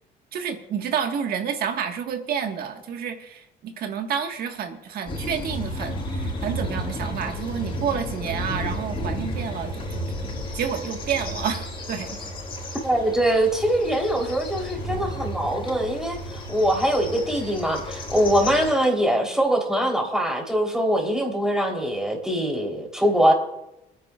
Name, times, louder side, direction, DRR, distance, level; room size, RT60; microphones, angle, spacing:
voice 1, 0.3-10.2 10.5-12.2, right 7 dB, 65° right, 5 dB, 1.5 m, -29 dB
sound 1, 5.1-18.7, equal, 35° left, 5.0 m, -32 dB
voice 2, 12.8-23.3, right 1 dB, 5° right, 0 dB, 3.5 m, -23 dB
27.0 x 10.0 x 2.4 m, 0.89 s
cardioid pair, 110°, 17 cm